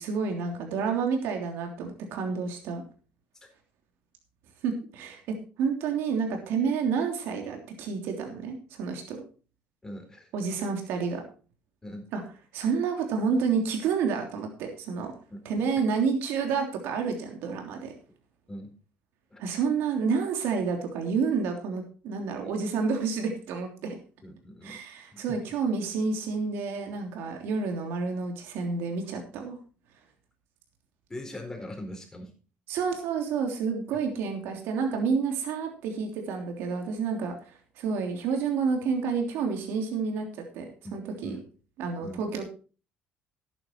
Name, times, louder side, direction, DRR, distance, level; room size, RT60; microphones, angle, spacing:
voice 1, 0.0-2.8 4.6-9.2 10.3-11.2 12.1-12.2 12.5-15.1 15.4-17.9 19.4-23.9 24.6-29.6 32.7-40.6 40.9-41.4 41.8-42.5, right 5 dB, 85° right, 3 dB, 3.2 m, -29 dB
voice 2, 9.8-10.3 11.8-12.1 15.3-15.4 18.5-18.7 19.3-19.4 22.4-22.5 24.2-24.8 25.1-25.4 31.1-32.3 40.8-41.4 42.0-42.2, left 1 dB, 15° left, 4 dB, 4.3 m, -41 dB
12.0 x 9.8 x 4.6 m, 0.38 s
cardioid pair, 105°, 4 cm